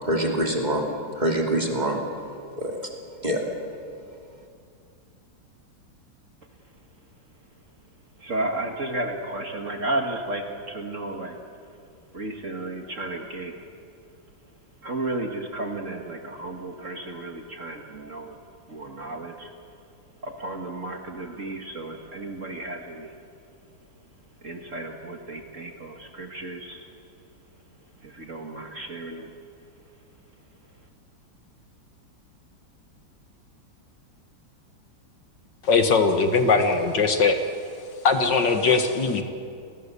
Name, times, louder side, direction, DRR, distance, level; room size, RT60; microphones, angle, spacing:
voice 1, 0.0-0.9 1.1-2.0 2.6-2.8 3.2-3.4, right 1 dB, 20° right, 1 dB, 2.9 m, -24 dB
voice 2, 8.2-11.4 12.1-13.6 14.8-18.3 18.7-19.5 20.2-23.1 24.4-26.8 28.2-29.3, right 2 dB, 40° right, 3 dB, 2.2 m, -33 dB
voice 3, 35.6-37.4 38.0-39.2, left 4 dB, 65° left, 6 dB, 2.1 m, -20 dB
29.5 x 20.5 x 6.9 m, 2.5 s
omnidirectional pair, 2.1 m